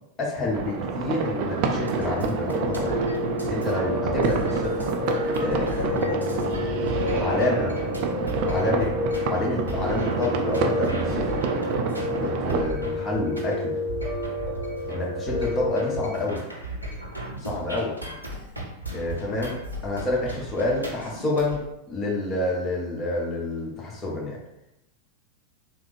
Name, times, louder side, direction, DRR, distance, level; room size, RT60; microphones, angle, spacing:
voice 1, 0.2-3.0 3.5-4.9 5.4-5.7 7.2-7.8 8.5-8.9 9.3-11.4 12.2-13.7 14.9-16.5 17.4-17.9 18.9-19.5 19.8-21.6 21.9-24.4, left 2 dB, 20° left, -4 dB, 1.0 m, -28 dB
sound 1, 0.5-12.6, right 4 dB, 45° right, 0.4 m, -28 dB
sound 2, 1.9-21.6, right 1 dB, 85° right, 0.7 m, -36 dB
Piano, 2.5-16.2, left 2 dB, 15° right, 0.7 m, -30 dB
voice 2, 5.1-7.6 8.3-8.8, left 2 dB, 65° left, -1 dB, 0.4 m, -35 dB
3.3 x 2.1 x 3.2 m, 0.86 s
figure-of-eight pair, 90°, 0 cm